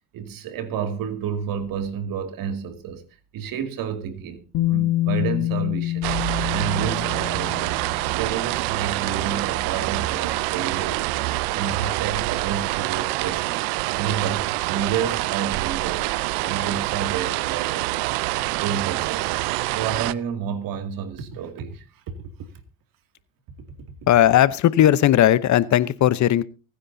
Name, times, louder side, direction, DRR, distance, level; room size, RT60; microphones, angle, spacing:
voice 1, 0.1-3.0 3.3-6.1 6.5-7.8 8.1-13.6 14.0-16.1 16.4-17.9 18.6-19.3 19.7-21.8 22.2-22.3, right 7 dB, 70° right, 2.4 m, -30 dB
Bass guitar, 4.5-8.5 9.6-9.7, left 15 dB, 75° left, 1.5 m, -26 dB
sound 1, 6.0-20.1, right 20 dB, 85° right, 0.6 m, -26 dB
voice 2, 24.1-26.4, left 12 dB, 55° left, 0.9 m, -17 dB
24.0 x 9.9 x 2.7 m
supercardioid pair, 80°, 35 cm